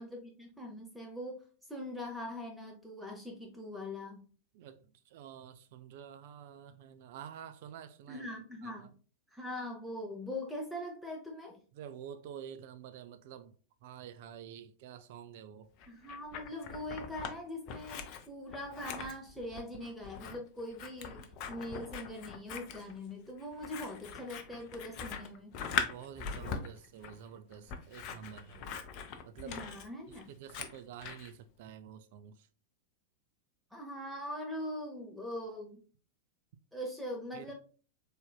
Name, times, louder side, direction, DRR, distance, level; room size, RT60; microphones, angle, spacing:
voice 1, 0.0-1.4 1.7-4.3 8.1-8.9 9.3-11.6 15.9-21.2 21.5-25.5 29.4-30.3 33.7-35.8 36.7-37.5, left 1 dB, ahead, 0.7 m, -42 dB
voice 2, 4.5-8.3 8.6-8.9 11.7-15.7 25.7-28.8 29.3-29.6 30.1-32.5 37.3-37.5, right 9 dB, 50° right, 0.4 m, -49 dB
Scissors, 15.8-17.3 17.7-31.3, left 6 dB, 40° left, 0.5 m, -41 dB
4.1 x 3.5 x 2.2 m
figure-of-eight pair, 90°, 0 cm